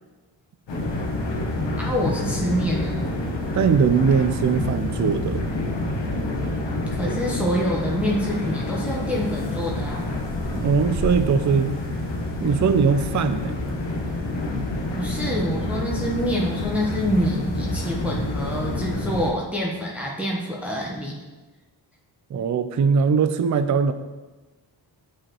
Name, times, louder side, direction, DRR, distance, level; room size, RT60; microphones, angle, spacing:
sound 1, 0.7-19.3, left 2 dB, 65° left, 1.1 m, -28 dB
voice 1, 1.8-3.0 6.9-10.0 14.9-21.1, equal, 5° right, -3 dB, 1.0 m, -26 dB
voice 2, 3.5-5.4 10.5-11.7 12.4-13.5 22.3-23.9, right 6 dB, 40° right, 10 dB, 0.4 m, -20 dB
8.5 x 4.9 x 3.0 m, 1.2 s
wide cardioid pair, 85°, 46 cm